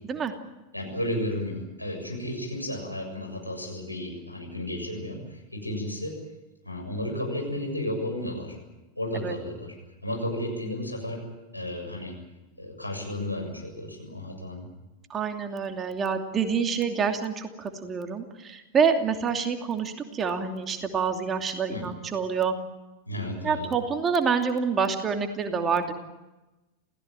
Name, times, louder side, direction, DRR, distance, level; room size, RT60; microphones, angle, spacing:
voice 1, 0.7-6.2 6.6-8.6 9.0-9.7 10.0-11.2 11.5-12.1 12.6-14.7 21.7-21.9 23.0-23.7, left 1 dB, 85° left, 2 dB, 7.2 m, -33 dB
voice 2, 15.1-22.5 23.4-25.9, right 6 dB, 25° right, 5 dB, 2.7 m, -27 dB
28.0 x 17.0 x 9.0 m, 1.1 s
figure-of-eight pair, 90°, 0 cm